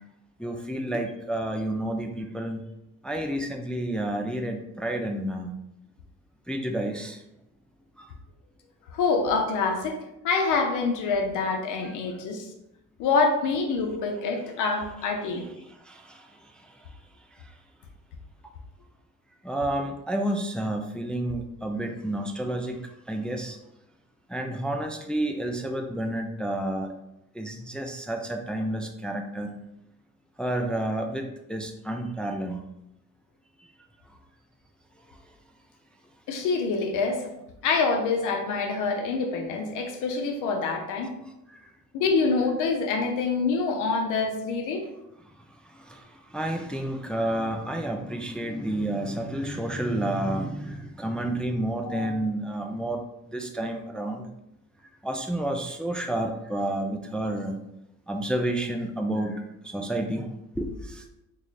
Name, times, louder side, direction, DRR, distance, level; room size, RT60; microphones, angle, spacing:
voice 1, 0.4-2.6 3.0-5.5 6.5-7.2 8.0-8.1 11.8-11.9 15.9-16.3 19.4-22.8 23.1-23.6 24.3-26.9 27.3-29.5 30.4-32.6 45.7-46.0 46.3-53.0 53.3-54.3 55.0-57.6 58.1-60.3 60.6-61.0, right 1 dB, 5° left, 3 dB, 0.3 m, -30 dB
voice 2, 8.9-10.0 10.2-12.5 13.0-15.5 36.3-37.3 37.6-41.1 41.9-44.9 51.8-52.1, left 4 dB, 90° left, 4 dB, 0.6 m, -26 dB
3.7 x 2.4 x 3.1 m, 0.87 s
cardioid pair, 90°, 30 cm